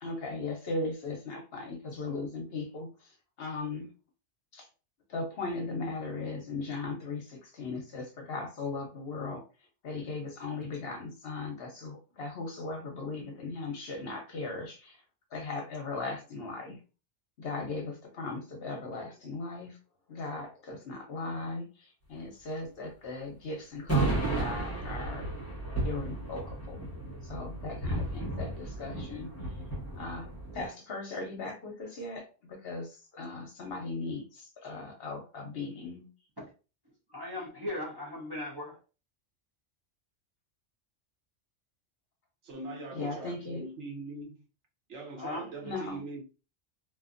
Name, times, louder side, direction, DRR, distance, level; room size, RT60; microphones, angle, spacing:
voice 1, 0.0-2.9 3.4-3.9 4.5-4.7 5.1-9.4 9.8-15.0 15.3-16.8 17.4-19.8 20.1-25.3 25.8-26.8 27.2-29.3 30.0-36.1 42.9-43.6 45.6-46.0, left 3 dB, 60° left, 0.8 m, -38 dB
sound 1, 23.9-30.7, right 2 dB, 15° left, 0.9 m, -33 dB
voice 2, 37.1-38.8 45.2-45.5, left 1 dB, 30° right, 0.5 m, -37 dB
voice 3, 42.4-44.5 44.9-46.2, right 3 dB, 70° right, 1.1 m, -41 dB
2.5 x 2.5 x 2.4 m
omnidirectional pair, 1.3 m